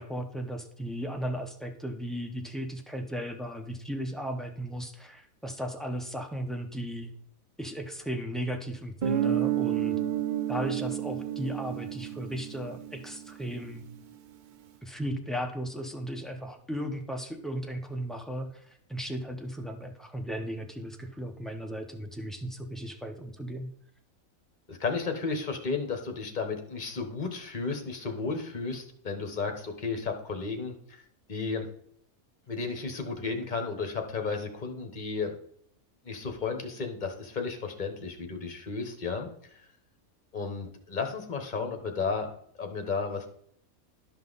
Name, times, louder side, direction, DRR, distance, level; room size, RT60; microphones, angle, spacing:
voice 1, 0.0-7.1 7.6-10.0 10.5-13.8 14.8-23.7, equal, ahead, 4 dB, 0.5 m, -36 dB
Guitar, 9.0-13.6, right 10 dB, 85° right, 0.4 m, -30 dB
voice 2, 24.7-31.0 31.3-31.7 32.5-35.3 36.0-39.6 40.3-42.3 42.6-43.3, left 4 dB, 35° left, 5 dB, 1.2 m, -33 dB
12.0 x 5.5 x 4.0 m, 0.66 s
omnidirectional pair, 1.5 m